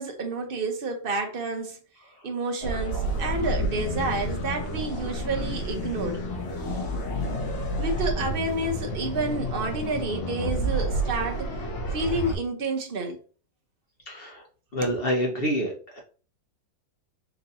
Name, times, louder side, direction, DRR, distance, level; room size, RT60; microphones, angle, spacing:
voice 1, 0.0-1.8 2.2-6.2 7.8-11.6 11.9-13.2 14.8-15.0, right 2 dB, 45° right, 0.7 m, -30 dB
sound 1, 2.6-12.3, right 1 dB, 90° left, 1.9 m, -30 dB
voice 2, 14.1-14.4 14.7-16.0, equal, 45° left, 0.8 m, -28 dB
4.5 x 2.7 x 4.1 m
omnidirectional pair, 2.0 m